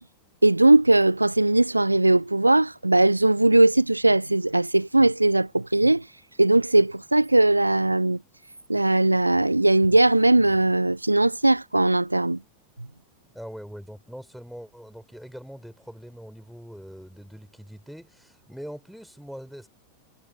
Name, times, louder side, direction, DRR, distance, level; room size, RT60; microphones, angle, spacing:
voice 1, 0.4-6.0 6.4-8.2 8.7-12.4, right 2 dB, 85° right, 0.6 m, -19 dB
voice 2, 13.3-19.7, equal, ahead, 4.3 m, -42 dB
figure-of-eight pair, 90°, 0 cm